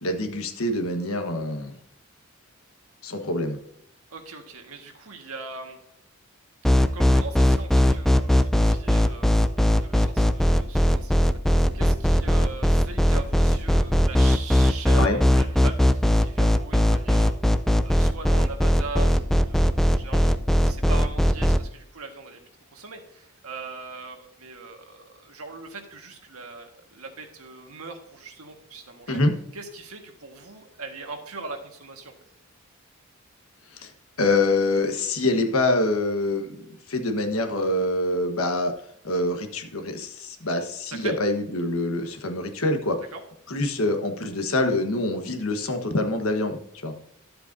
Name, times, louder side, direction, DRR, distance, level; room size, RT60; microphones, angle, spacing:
voice 1, 0.0-1.7 3.0-3.6 14.9-15.2 29.1-29.3 33.7-33.9 34.2-36.6 36.9-38.7 39.0-42.9 43.5-46.9, left 2 dB, 70° left, 5 dB, 1.3 m, -25 dB
voice 2, 4.1-5.8 6.6-20.4 20.6-22.4 22.7-29.2 29.5-32.1 40.9-41.2 43.1-43.2, right 3 dB, 85° right, 4 dB, 1.6 m, -40 dB
sound 1, 6.6-21.6, equal, ahead, 0.4 m, -19 dB
12.0 x 7.9 x 2.7 m, 0.71 s
head